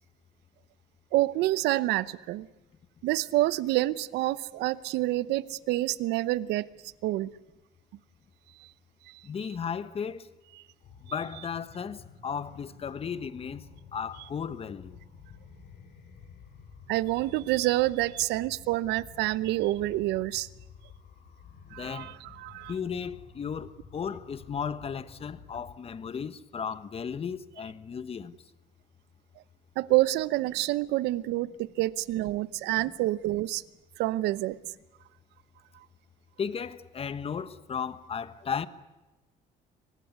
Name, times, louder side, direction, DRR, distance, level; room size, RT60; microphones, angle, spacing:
voice 1, 1.1-2.5 3.0-6.7 7.0-7.3 9.1-9.2 16.9-20.5 21.7-22.7 29.8-33.6 34.0-34.6, right 17 dB, 85° right, 0.8 m, -27 dB
voice 2, 9.2-10.3 11.1-13.7 13.9-15.0 21.8-22.1 22.7-28.4 36.4-38.7, left 7 dB, 35° left, 1.2 m, -35 dB
sound 1, 10.8-25.8, left 6 dB, 70° left, 5.4 m, -51 dB
24.0 x 19.5 x 9.6 m
cardioid pair, 110°, 17 cm